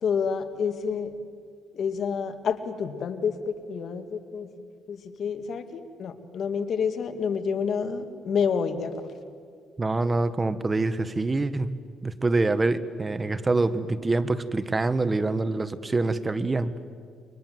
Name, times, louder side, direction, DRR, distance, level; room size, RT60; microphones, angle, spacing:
voice 1, 0.0-1.2 1.7-4.5 4.9-9.1, left 6 dB, 60° left, 8 dB, 2.2 m, -29 dB
voice 2, 9.8-16.7, right 3 dB, 25° right, 12 dB, 1.3 m, -25 dB
29.0 x 24.5 x 7.8 m, 2.2 s
cardioid pair, 90°, 0 cm